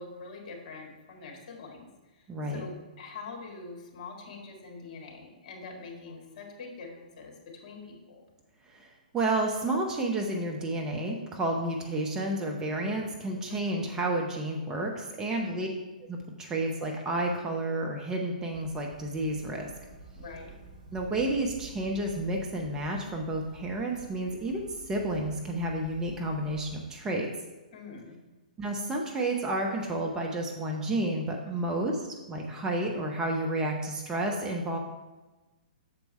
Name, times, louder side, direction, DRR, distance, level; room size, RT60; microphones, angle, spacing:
voice 1, 0.0-8.2 13.5-13.8 15.3-15.6 20.1-20.5 27.7-28.2 31.5-31.8, left 3 dB, 45° left, 1 dB, 1.7 m, -44 dB
voice 2, 2.3-2.6 8.7-15.7 16.1-19.7 20.9-27.3 28.6-32.0 32.3-34.8, right 1 dB, 15° right, 0 dB, 0.7 m, -31 dB
sound 1, 18.5-26.9, right 3 dB, 35° right, 1.7 m, -50 dB
6.9 x 4.5 x 5.3 m, 1.1 s
figure-of-eight pair, 120°, 5 cm